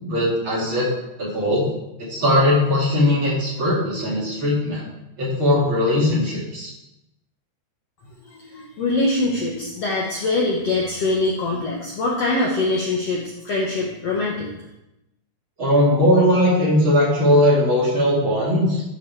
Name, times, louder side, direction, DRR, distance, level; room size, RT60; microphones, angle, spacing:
voice 1, 0.0-0.9 1.2-1.7 2.0-4.8 5.2-6.7 15.6-18.8, left 1 dB, 40° right, -6 dB, 2.7 m, -19 dB
voice 2, 8.3-14.5, left 2 dB, 65° left, -2 dB, 1.6 m, -23 dB
11.5 x 4.7 x 4.6 m, 0.90 s
omnidirectional pair, 3.9 m